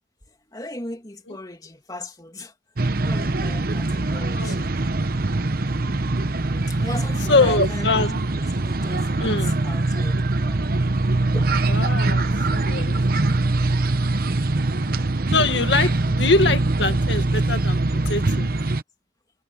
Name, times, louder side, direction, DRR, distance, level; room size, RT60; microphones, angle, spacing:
voice 1, 0.3-2.5 3.0-4.7 5.2-5.5 6.7-7.9 8.3-10.7 11.3-11.5 13.6-14.0, left 1 dB, 20° left, 2.9 m, -38 dB
sound 1, 2.8-18.8, right 2 dB, 55° right, 1.0 m, -23 dB
voice 2, 4.2-4.6 5.6-6.0 7.3-8.2 9.2-9.5 11.7-12.2 12.5-13.0 14.9-15.0 15.3-18.5, left 3 dB, 70° left, 1.9 m, -23 dB
head